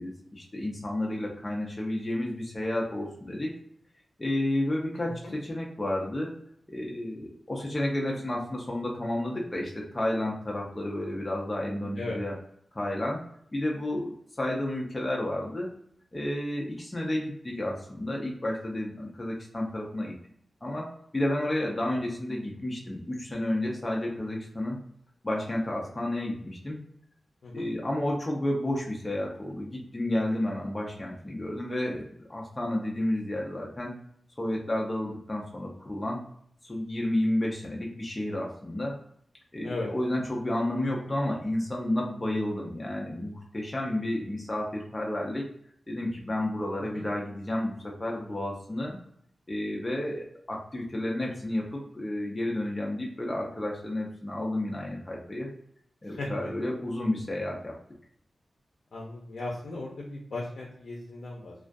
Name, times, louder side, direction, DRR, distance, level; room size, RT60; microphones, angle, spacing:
voice 1, 0.0-3.5 4.2-6.3 6.7-12.3 12.7-13.2 13.5-15.7 16.1-20.1 20.6-24.8 25.2-26.8 27.5-33.9 34.4-36.2 36.6-39.0 39.5-45.5 45.9-49.0 49.5-55.5 56.0-57.7, left 1 dB, 20° left, -2 dB, 0.4 m, -31 dB
voice 2, 58.9-61.5, left 2 dB, 80° left, -3 dB, 0.4 m, -37 dB
2.2 x 2.2 x 2.5 m, 0.67 s
wide cardioid pair, 165°, 0 cm